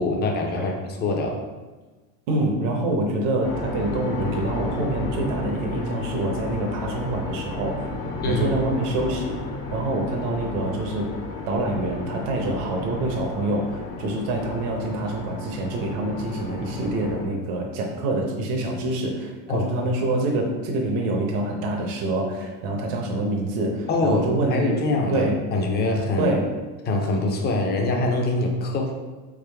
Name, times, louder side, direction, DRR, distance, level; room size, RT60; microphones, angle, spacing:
voice 1, 0.0-1.4 8.2-8.5 19.5-19.7 23.9-26.3 26.9-28.9, left 2 dB, 25° left, 2 dB, 0.5 m, -24 dB
voice 2, 2.3-7.9 8.3-9.4 9.7-11.1 11.5-24.7 25.1-25.4 26.2-26.5, right 2 dB, 65° right, 1 dB, 0.9 m, -26 dB
sound 1, 3.4-17.3, left 2 dB, 70° left, 1.0 m, -33 dB
4.0 x 3.7 x 3.4 m, 1.3 s
supercardioid pair, 145°, 44 cm